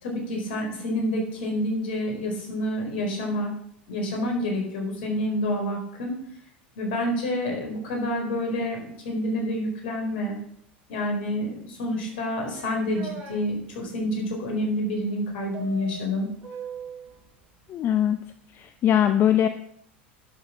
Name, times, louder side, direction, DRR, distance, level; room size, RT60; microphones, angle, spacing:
voice 1, 0.0-3.5 3.9-6.1 6.8-10.4 10.9-16.3, left 1 dB, 70° left, 1 dB, 4.4 m, -28 dB
sound 1, 12.1-13.4 15.5-17.2, right 5 dB, 45° right, 5.3 m, -40 dB
voice 2, 17.7-18.2 18.5-19.5, left 10 dB, 40° left, 9 dB, 0.8 m, -21 dB
11.5 x 6.7 x 6.0 m, 0.69 s
hypercardioid pair, 85°, 6 cm